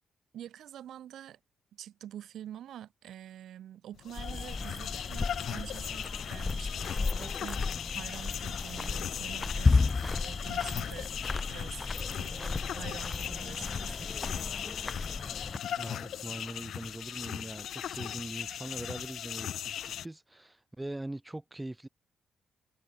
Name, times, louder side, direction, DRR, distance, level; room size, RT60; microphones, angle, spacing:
voice 1, 0.3-1.4 1.7-11.8 12.2-14.5, right 11 dB, 75° right, 1.2 m, -47 dB
sound 1, 3.9-20.1, left 10 dB, 70° left, 0.5 m, -39 dB
sound 2, 4.2-15.6, left 4 dB, 30° left, 0.7 m, -33 dB
voice 2, 15.8-21.9, right 1 dB, 15° right, 1.4 m, -42 dB
sound 3, 18.1-18.9, left 1 dB, 10° left, 7.9 m, -64 dB
cardioid pair, 70°, 0 cm